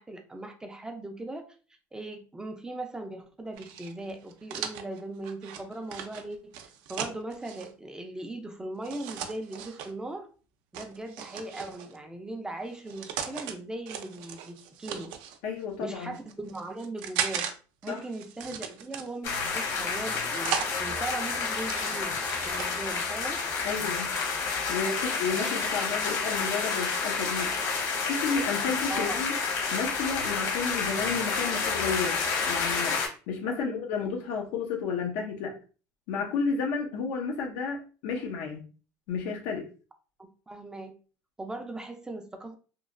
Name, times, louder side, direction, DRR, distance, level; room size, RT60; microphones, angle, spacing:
voice 1, 0.0-1.5 1.9-10.3 10.7-15.1 15.8-17.5 17.8-22.2 22.5-23.4 28.9-29.3 33.5-33.7 40.2-40.9 41.4-42.5, right 2 dB, 10° right, 0.3 m, -39 dB
sound 1, 3.6-7.7 8.8-9.9 10.7-12.0 12.7-13.5 13.9-15.4 16.0-17.5 17.8-19.4 19.9-20.7 21.2-22.9, right 8 dB, 75° right, 0.5 m, -37 dB
voice 2, 15.4-16.1 17.9-18.0 23.6-24.1 24.7-27.5 28.0-29.4 29.7-33.0 33.3-35.6 36.1-38.6 39.1-39.7, left 5 dB, 85° left, 0.6 m, -32 dB
sound 2, 19.2-33.1, left 5 dB, 65° left, 1.2 m, -29 dB
3.0 x 2.2 x 2.4 m
cardioid pair, 135°, 8 cm